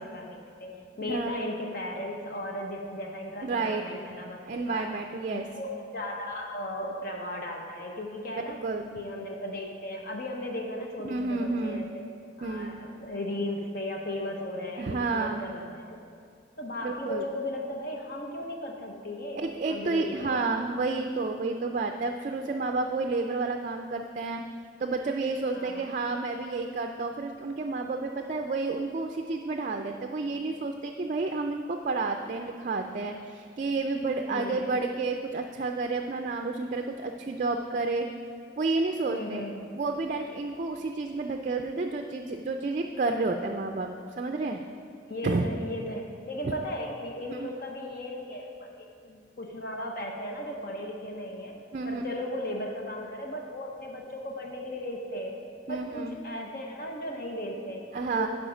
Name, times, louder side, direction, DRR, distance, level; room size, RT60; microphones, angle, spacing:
voice 1, 0.0-4.9 5.3-8.6 8.9-12.0 12.4-16.0 16.6-20.4 25.5-25.9 34.3-34.7 39.1-39.7 45.1-51.6 51.9-55.4 55.7-58.3, left 1 dB, 50° left, 1 dB, 0.9 m, -36 dB
voice 2, 3.4-3.8 4.5-5.5 8.5-8.9 11.0-11.9 12.4-12.8 14.8-15.5 16.8-17.3 19.4-24.4 24.8-38.1 38.6-39.4 39.7-43.9 44.2-44.6 45.2-45.4 47.3-47.5 51.7-52.0 55.7-56.1 57.9-58.3, right 3 dB, 45° right, 4 dB, 0.4 m, -30 dB
11.0 x 4.9 x 5.0 m, 2.4 s
head